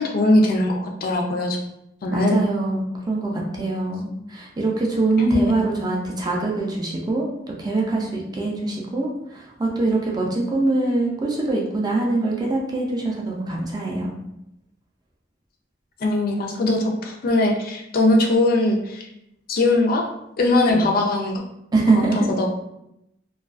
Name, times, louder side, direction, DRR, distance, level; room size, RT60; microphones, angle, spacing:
voice 1, 0.0-1.6 2.0-2.4 5.2-5.5 16.0-19.1 19.5-20.1 20.4-21.4 21.9-22.5, left 2 dB, 50° left, 1 dB, 0.4 m, -20 dB
voice 2, 2.1-7.3 7.6-14.2 20.7-20.9 21.7-22.3, right 2 dB, 20° right, -2 dB, 0.4 m, -23 dB
2.3 x 2.3 x 2.3 m, 0.82 s
head